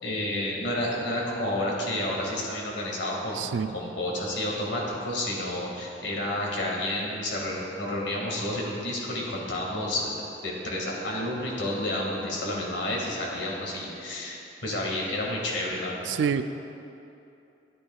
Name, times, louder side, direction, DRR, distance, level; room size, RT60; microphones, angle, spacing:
voice 1, 0.0-3.5 3.7-10.1 10.4-16.2, left 1 dB, 80° left, -3 dB, 2.0 m, -30 dB
voice 2, 3.4-3.7 16.1-16.4, right 7 dB, 80° right, 11 dB, 0.3 m, -26 dB
12.5 x 9.7 x 2.4 m, 2.7 s
head